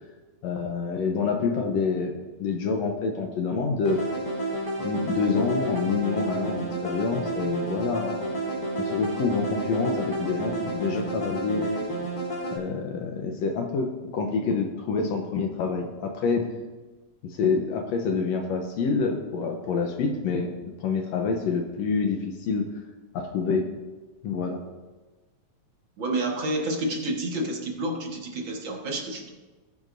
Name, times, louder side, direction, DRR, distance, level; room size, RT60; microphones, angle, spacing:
voice 1, 0.4-2.1 2.4-4.0 4.8-8.4 8.8-11.8 12.5-16.5 17.2-22.7 23.1-23.7 24.2-24.6, left 4 dB, 70° left, 3 dB, 2.0 m, -27 dB
sound 1, 3.8-12.6, right 2 dB, 15° left, 2.7 m, -31 dB
voice 2, 26.0-29.3, right 1 dB, 50° right, 0 dB, 2.0 m, -29 dB
19.0 x 9.3 x 2.6 m, 1.3 s
omnidirectional pair, 3.3 m